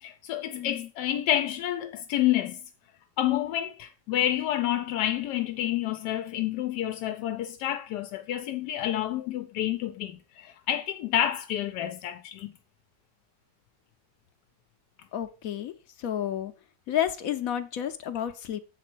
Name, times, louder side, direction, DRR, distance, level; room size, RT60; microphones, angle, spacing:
voice 1, 0.0-2.6 3.2-12.5, left 12 dB, 90° left, 1.2 m, -29 dB
voice 2, 0.5-0.9 15.1-15.7 16.0-16.5 16.9-18.6, left 10 dB, 65° left, 1.0 m, -31 dB
7.4 x 4.2 x 6.1 m
omnidirectional pair, 1.7 m